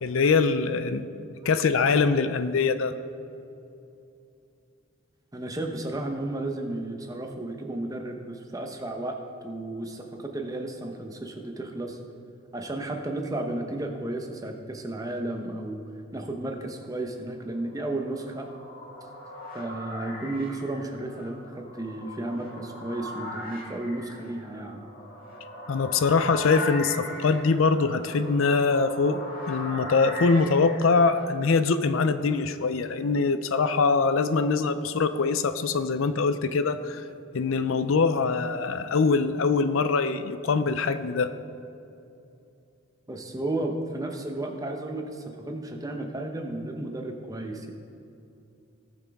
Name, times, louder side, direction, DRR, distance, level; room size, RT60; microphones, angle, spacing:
voice 1, 0.0-1.0 1.5-2.9 25.7-29.2 29.5-37.0 37.3-41.3, left 4 dB, 75° left, 12 dB, 0.5 m, -23 dB
voice 2, 5.3-9.1 9.4-12.0 12.5-15.8 16.1-18.5 19.5-24.8 43.1-47.7, right 2 dB, 15° right, 3 dB, 0.8 m, -33 dB
sound 1, 17.9-31.3, left 1 dB, 40° left, 2.3 m, -39 dB
17.5 x 6.1 x 3.5 m, 2.7 s
head